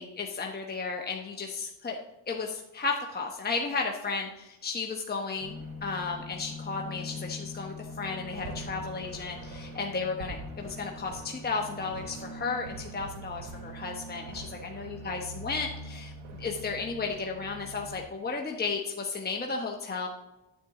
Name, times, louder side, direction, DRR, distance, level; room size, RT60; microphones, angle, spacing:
voice 1, 0.0-2.0 2.3-16.1 16.4-20.1, left 4 dB, 20° left, 1 dB, 1.0 m, -34 dB
sound 1, 5.4-18.1, equal, 90° right, 1.5 m, -42 dB
9.4 x 8.4 x 3.8 m, 0.97 s
cardioid pair, 85°, 45 cm